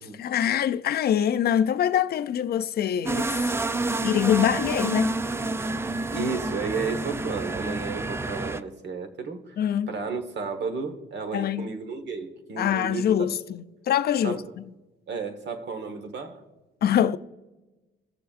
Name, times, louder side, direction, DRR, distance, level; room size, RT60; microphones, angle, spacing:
voice 1, 0.2-3.3 4.0-5.2 9.6-9.9 11.3-11.7 12.6-14.4 16.8-17.2, left 9 dB, 50° left, 0.5 m, -24 dB
sound 1, 3.0-8.6, right 2 dB, 15° right, 0.4 m, -29 dB
voice 2, 5.8-9.6 9.9-13.3 14.2-14.5 15.1-16.4, right 4 dB, 60° right, 1.3 m, -33 dB
17.0 x 6.8 x 2.5 m
cardioid pair, 90°, 20 cm